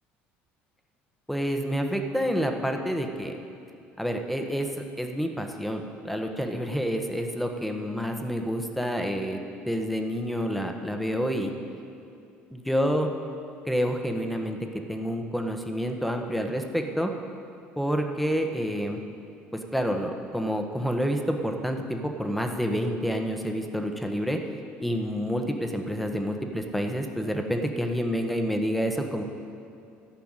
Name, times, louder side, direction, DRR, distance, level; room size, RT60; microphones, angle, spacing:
voice 1, 1.3-3.3 4.0-4.7 5.0-9.4 9.7-11.5 12.5-13.1 13.6-14.6 14.9-17.1 17.8-19.0 19.7-24.4 24.8-29.2, equal, ahead, 4 dB, 1.2 m, -28 dB
12.0 x 5.8 x 8.9 m, 2.6 s
supercardioid pair, 85°, 5 cm